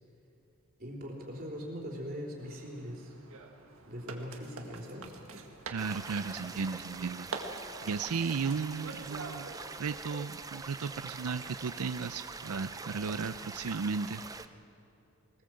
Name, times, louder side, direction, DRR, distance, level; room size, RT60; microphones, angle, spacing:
voice 1, 0.8-3.1 3.9-5.1, equal, 40° right, -1 dB, 3.9 m, -41 dB
sound 1, 2.4-10.2, right 3 dB, 70° right, 1.9 m, -46 dB
voice 2, 5.7-14.2, right 5 dB, 90° right, 11 dB, 0.5 m, -35 dB
sound 2, 5.8-14.5, right 4 dB, 15° right, 0.5 m, -44 dB
21.5 x 19.5 x 7.7 m, 2.9 s
head